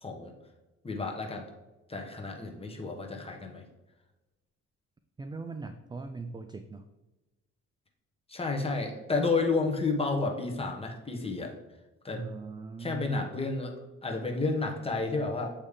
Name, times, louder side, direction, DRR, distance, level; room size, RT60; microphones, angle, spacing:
voice 1, 0.0-0.3 0.8-1.4 1.9-3.6 8.3-11.5 12.0-12.2 12.8-13.7 14.0-15.5, left 3 dB, 20° left, 1 dB, 1.2 m, -31 dB
voice 2, 5.2-6.8 12.1-13.4, right 3 dB, 15° right, 8 dB, 0.3 m, -40 dB
8.2 x 3.2 x 3.6 m, 1.1 s
cardioid pair, 90°, 30 cm